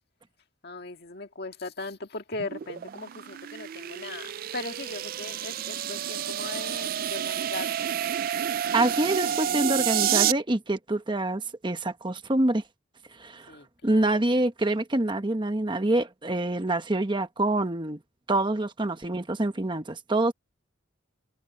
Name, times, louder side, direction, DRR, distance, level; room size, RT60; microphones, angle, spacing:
voice 1, 0.6-7.9 13.5-14.2, left 3 dB, 55° left, 2.0 m, -39 dB
sound 1, 2.3-10.3, right 9 dB, 50° right, 0.3 m, -29 dB
voice 2, 8.7-12.6 13.2-13.5 13.8-18.0 18.3-20.3, right 2 dB, 25° right, 1.0 m, -26 dB
head